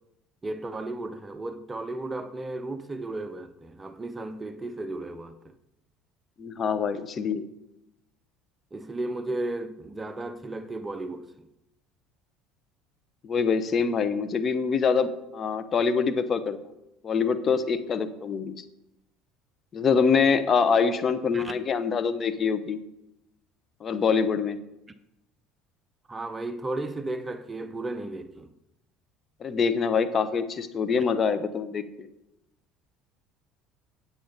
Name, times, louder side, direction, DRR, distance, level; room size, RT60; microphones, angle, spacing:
voice 1, 0.4-5.5 8.7-11.5 21.3-21.5 26.1-28.5, right 2 dB, 20° right, 0.8 m, -34 dB
voice 2, 6.4-7.5 13.2-16.6 17.0-18.6 19.7-22.8 23.8-24.6 29.4-32.1, left 5 dB, 40° left, 0.8 m, -25 dB
8.7 x 8.6 x 4.0 m
hypercardioid pair, 80°, 0 cm